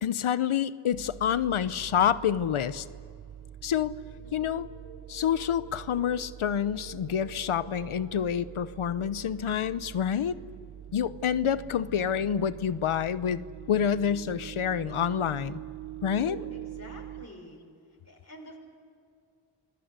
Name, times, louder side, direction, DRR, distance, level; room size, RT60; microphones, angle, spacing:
voice 1, 0.0-2.8 3.6-3.9 4.3-4.7 5.1-10.4 10.9-15.6 16.0-16.4, left 8 dB, 80° left, 15 dB, 0.9 m, -28 dB
sound 1, 0.9-17.3, right 12 dB, 75° right, 1.0 m, -44 dB
voice 2, 16.2-17.6 18.0-18.6, left 1 dB, 30° left, -1 dB, 6.0 m, -47 dB
28.0 x 21.5 x 8.2 m, 2.3 s
wide cardioid pair, 80°, 49 cm